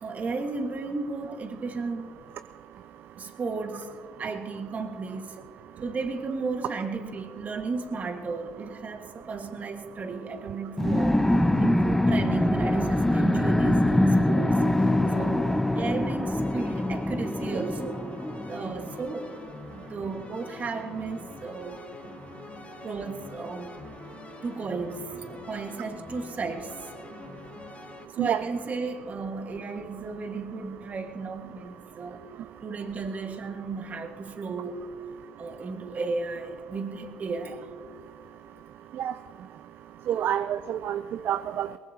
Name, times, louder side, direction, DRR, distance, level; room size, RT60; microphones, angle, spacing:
voice 1, 0.0-2.1 3.2-3.9 4.2-5.4 5.8-11.2 11.6-14.7 15.1-18.0 18.5-19.3 19.7-21.8 22.8-23.7 24.1-26.9 28.2-32.2 32.6-34.8 35.4-37.7, right 4 dB, 40° right, 6 dB, 1.6 m, -34 dB
Tripod scary monster growl, 10.8-18.9, left 1 dB, 5° left, 0.7 m, -24 dB
sound 1, 16.4-28.1, left 4 dB, 35° left, 1.6 m, -45 dB
voice 2, 40.1-41.8, right 10 dB, 55° right, 13 dB, 0.4 m, -28 dB
22.0 x 19.0 x 2.8 m, 2.2 s
hypercardioid pair, 65°, 4 cm